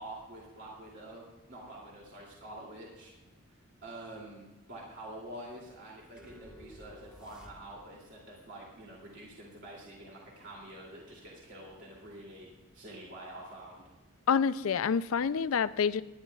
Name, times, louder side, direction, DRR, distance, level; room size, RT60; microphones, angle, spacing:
voice 1, 0.0-3.1 3.8-13.8, right 1 dB, 60° right, -3 dB, 2.8 m, -47 dB
sound 1, 6.2-8.0, equal, 5° right, 1.5 m, -53 dB
voice 2, 14.3-16.0, left 6 dB, 75° left, 16 dB, 0.4 m, -27 dB
19.5 x 11.0 x 2.4 m, 1.1 s
head